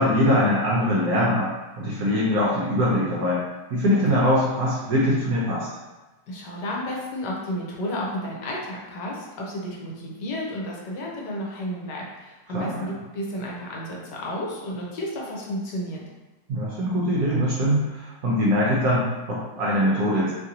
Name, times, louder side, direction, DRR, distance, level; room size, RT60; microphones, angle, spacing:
voice 1, 0.0-1.5 1.8-3.4 3.7-5.7 12.5-12.9 16.5-20.3, equal, 65° right, -6 dB, 1.0 m, -22 dB
voice 2, 6.3-16.0, equal, 75° left, -3 dB, 1.2 m, -32 dB
3.1 x 2.4 x 2.7 m, 1.1 s
omnidirectional pair, 2.0 m